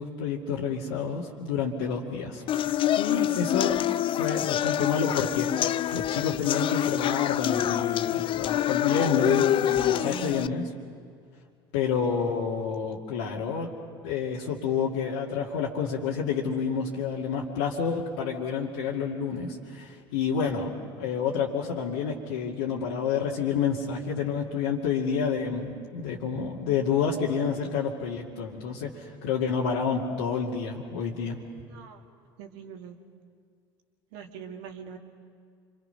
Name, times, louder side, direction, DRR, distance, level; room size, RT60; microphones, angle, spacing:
voice 1, 0.0-2.5 3.0-3.8 4.2-10.7 11.7-13.7 14.0-20.7 21.0-31.4, left 6 dB, 75° left, -5 dB, 2.3 m, -29 dB
sound 1, 2.5-10.5, left 12 dB, 45° left, 0.5 m, -26 dB
voice 2, 3.0-3.3 9.9-10.6 31.7-32.0 32.4-33.0 34.1-35.0, right 8 dB, 70° right, 3 dB, 2.1 m, -42 dB
27.5 x 24.5 x 5.7 m, 2.1 s
hypercardioid pair, 70°, 13 cm